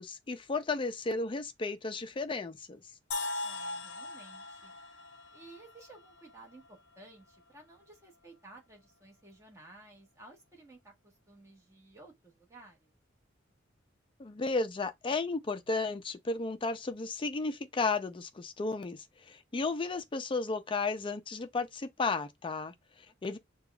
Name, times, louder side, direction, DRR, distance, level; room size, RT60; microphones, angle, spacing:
voice 1, 0.0-2.8 14.2-23.4, left 3 dB, 25° left, 0.4 m, -34 dB
sound 1, 3.1-7.0, left 2 dB, 65° left, 0.6 m, -40 dB
voice 2, 3.4-4.7 5.3-12.9 23.1-23.4, right 2 dB, 15° right, 1.3 m, -55 dB
6.5 x 2.3 x 2.3 m
head